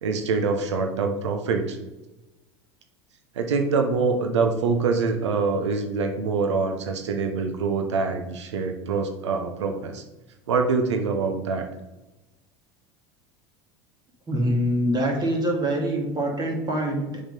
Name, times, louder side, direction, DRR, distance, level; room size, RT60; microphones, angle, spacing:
voice 1, 0.0-1.8 3.3-10.0 10.5-11.7, right 4 dB, 80° right, 5 dB, 0.9 m, -25 dB
voice 2, 14.3-17.2, right 1 dB, 30° right, 1 dB, 2.1 m, -24 dB
7.1 x 3.9 x 5.4 m, 1.0 s
hypercardioid pair, 80°, 15 cm